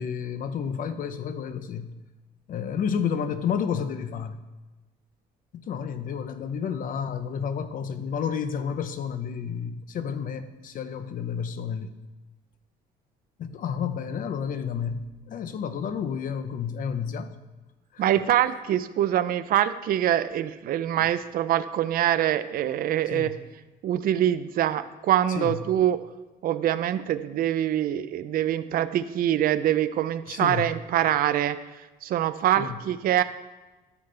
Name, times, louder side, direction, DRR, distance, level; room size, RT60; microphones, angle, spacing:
voice 1, 0.0-1.9 2.5-4.4 5.5-11.9 13.4-17.3 17.9-18.0 23.1-23.4 25.3-25.6 30.3-30.7 32.6-32.8, left 7 dB, 55° left, 11 dB, 0.8 m, -31 dB
voice 2, 18.0-23.3 23.8-26.0 26.4-31.6 32.0-33.2, right 11 dB, 60° right, 12 dB, 0.6 m, -24 dB
13.0 x 7.2 x 3.4 m, 1.2 s
cardioid pair, 110°, 17 cm